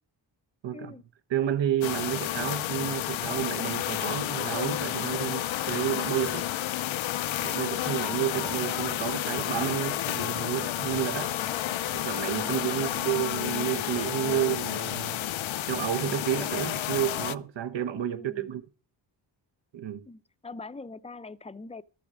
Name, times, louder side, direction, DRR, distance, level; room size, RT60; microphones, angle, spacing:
voice 1, 0.7-1.0 11.3-11.9 12.7-13.1 18.1-18.5 20.1-21.8, left 3 dB, 15° left, 0.5 m, -43 dB
voice 2, 1.3-6.5 7.4-11.3 11.9-15.2 15.7-18.6 19.7-20.0, right 11 dB, 65° right, 1.1 m, -30 dB
sound 1, 1.8-17.3, left 13 dB, 75° left, 0.7 m, -31 dB
13.0 x 7.1 x 6.2 m
cardioid pair, 75°, 48 cm